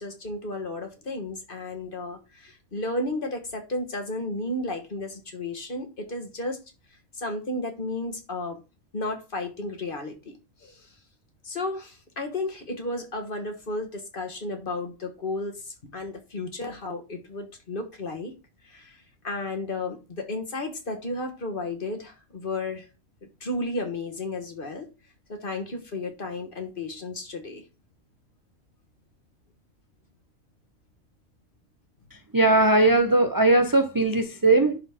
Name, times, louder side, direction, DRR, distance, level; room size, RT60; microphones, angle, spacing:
voice 1, 0.0-6.6 7.1-8.6 8.9-10.3 10.6-10.9 11.4-18.3 18.6-22.9 23.4-24.9 25.3-27.6, left 2 dB, 40° left, 1.5 m, -33 dB
voice 2, 32.1-34.8, right 2 dB, 30° right, 0.3 m, -20 dB
11.0 x 4.0 x 3.6 m
omnidirectional pair, 1.4 m